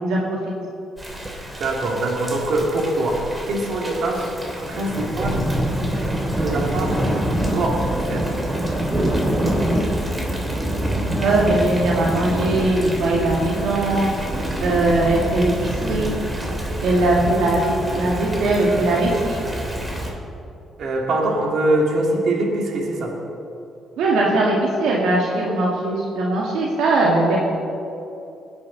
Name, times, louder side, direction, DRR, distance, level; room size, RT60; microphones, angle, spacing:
voice 1, 0.0-0.4 11.2-14.1 14.6-16.2 16.8-19.4 24.0-27.4, right 2 dB, 85° right, -4 dB, 2.1 m, -20 dB
Thunder / Rain, 1.0-20.1, right 1 dB, 20° right, 2.7 m, -26 dB
voice 2, 1.6-4.3 4.7-5.4 6.4-8.3 20.8-23.1, right 1 dB, 65° right, -1 dB, 2.7 m, -23 dB
20.0 x 10.5 x 4.1 m, 2.7 s
cardioid pair, 90°, 0 cm